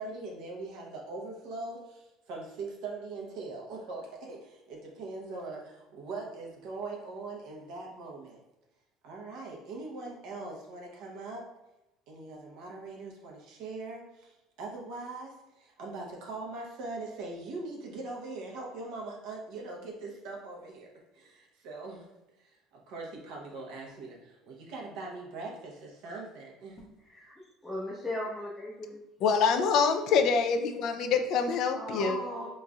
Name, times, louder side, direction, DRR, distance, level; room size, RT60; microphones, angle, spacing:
voice 1, 0.0-8.4 9.0-11.4 12.1-22.1 22.4-26.8 32.0-32.5, right 3 dB, 70° right, -1 dB, 0.8 m, -41 dB
voice 2, 27.6-29.0 31.7-32.5, left 1 dB, 10° left, -6 dB, 0.6 m, -38 dB
voice 3, 29.2-32.2, left 5 dB, 55° left, 7 dB, 0.4 m, -25 dB
3.8 x 3.0 x 2.3 m, 0.98 s
cardioid pair, 145°, 0 cm